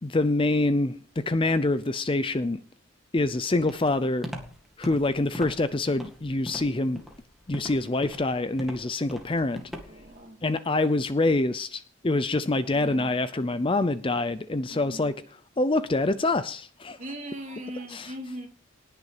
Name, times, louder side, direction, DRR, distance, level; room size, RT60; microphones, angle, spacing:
voice 1, 0.0-2.6 3.1-4.3 4.8-7.0 7.5-9.6 10.4-15.2 15.6-17.0 17.9-18.1, left 2 dB, 25° left, 0.5 m, -26 dB
Walk footsteps, 3.7-10.1, equal, ahead, 2.0 m, -40 dB
voice 2, 9.5-10.4 12.7-13.1 14.7-15.1 17.0-18.5, right 1 dB, 35° right, 2.7 m, -40 dB
19.0 x 6.9 x 4.9 m
head